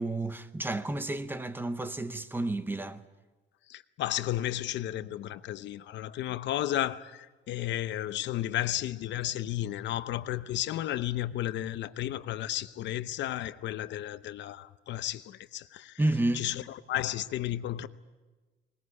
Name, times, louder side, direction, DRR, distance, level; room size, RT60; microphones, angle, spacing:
voice 1, 0.0-3.0 16.0-16.5, right 2 dB, 10° right, 0.8 m, -31 dB
voice 2, 3.7-16.0 16.3-16.6 16.9-17.9, left 13 dB, 75° left, 0.8 m, -33 dB
20.5 x 20.0 x 9.7 m
cardioid pair, 155°, 19 cm